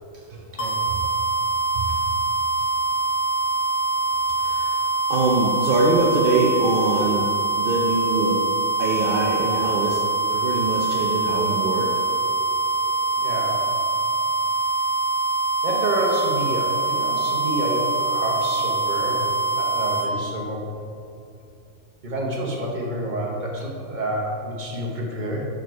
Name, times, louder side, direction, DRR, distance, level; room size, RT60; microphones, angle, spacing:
sound 1, 0.6-20.1, right 3 dB, 60° left, 1.3 m, -24 dB
voice 1, 4.4-4.8 5.1-7.3 7.5-8.4 8.8-10.0 10.3-11.9, right 2 dB, 55° right, -2 dB, 0.6 m, -23 dB
voice 2, 13.2-13.7 15.6-19.3 19.6-20.7 22.0-25.5, right 1 dB, 40° right, -2 dB, 1.0 m, -28 dB
6.1 x 4.6 x 4.5 m, 2.6 s
omnidirectional pair, 1.4 m